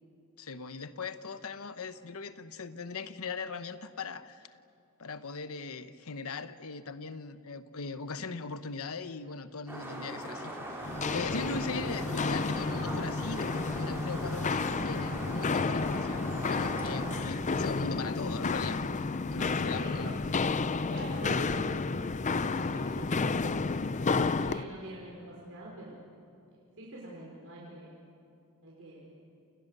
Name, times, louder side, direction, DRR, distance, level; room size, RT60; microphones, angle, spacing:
voice 1, 0.4-4.5 5.0-18.8 19.3-20.1 22.5-22.7, left 4 dB, 70° left, 11 dB, 1.1 m, -40 dB
sound 1, 9.7-17.2, right 1 dB, 10° right, 4.8 m, -40 dB
Walk footsteps, 10.8-24.6, left 4 dB, 35° left, 0.6 m, -31 dB
voice 2, 19.7-20.3 20.9-22.0 22.4-23.7 24.0-26.1 26.5-28.0 28.6-29.3, right 1 dB, 65° right, -4 dB, 5.5 m, -45 dB
29.5 x 28.5 x 6.7 m, 2.5 s
head